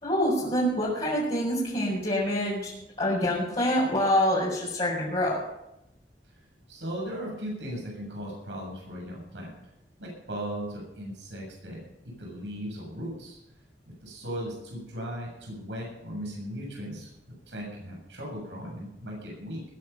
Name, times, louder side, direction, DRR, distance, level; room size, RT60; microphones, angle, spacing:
voice 1, 0.0-2.7 3.0-5.4, equal, 35° left, -8 dB, 5.1 m, -26 dB
voice 2, 6.7-9.5 10.0-13.4 13.9-19.6, equal, 90° right, -2 dB, 7.3 m, -37 dB
20.0 x 9.9 x 5.7 m, 0.87 s
head